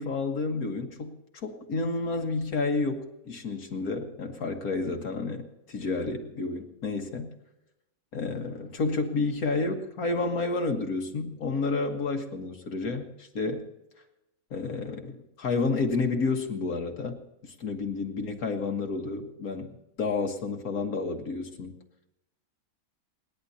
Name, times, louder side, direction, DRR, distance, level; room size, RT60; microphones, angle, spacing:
voice 1, 0.0-7.3 8.1-13.6 14.5-19.7 20.0-21.7, left 3 dB, 85° left, 3 dB, 2.0 m, -30 dB
28.5 x 10.5 x 2.8 m, 0.91 s
omnidirectional pair, 1.5 m